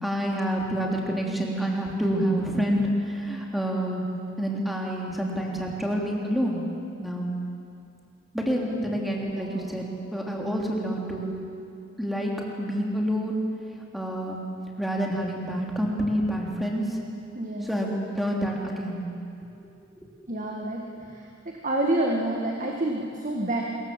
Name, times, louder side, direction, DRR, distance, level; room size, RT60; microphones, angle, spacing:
voice 1, 0.0-4.0 4.4-6.6 7.0-7.3 8.3-9.8 10.1-11.3 12.0-12.3 12.6-13.4 13.9-14.4 14.8-17.0 17.6-19.0 20.0-20.1, equal, ahead, -2 dB, 3.2 m, -28 dB
voice 2, 9.3-9.7 17.3-17.7 20.3-20.8 21.1-21.3 21.6-23.6, right 1 dB, 40° right, 0 dB, 1.9 m, -28 dB
26.0 x 22.5 x 7.7 m, 2.5 s
head